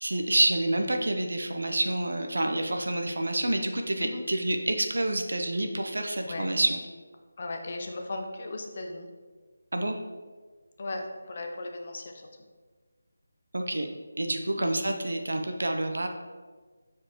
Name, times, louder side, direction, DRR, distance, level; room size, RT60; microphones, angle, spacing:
voice 1, 0.0-6.8 9.7-10.0 13.5-13.9 14.2-16.1, right 1 dB, 80° right, 5 dB, 0.8 m, -28 dB
voice 2, 7.4-9.1 10.8-12.3 14.6-14.9, left 2 dB, 35° left, 3 dB, 0.6 m, -37 dB
7.2 x 4.6 x 3.1 m, 1.4 s
figure-of-eight pair, 175°, 0 cm